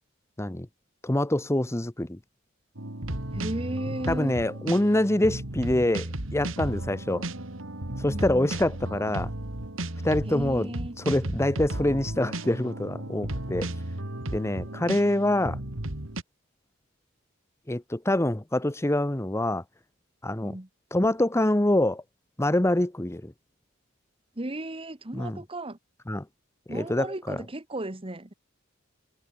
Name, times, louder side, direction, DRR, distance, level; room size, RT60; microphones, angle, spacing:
voice 1, 1.0-2.2 4.1-7.2 8.0-9.3 10.0-10.7 11.0-13.7 14.3-15.6 17.7-19.6 20.2-20.5 20.9-22.0 22.4-23.3 25.1-25.4 26.1-26.2 26.7-27.4, left 1 dB, 15° left, 0.9 m, -25 dB
sound 1, 2.8-16.2, right 1 dB, 75° right, 3.0 m, -34 dB
voice 2, 3.3-4.4 8.1-8.5 10.3-11.0 20.4-20.7 24.3-25.8 26.7-28.3, right 1 dB, 30° right, 1.6 m, -35 dB
head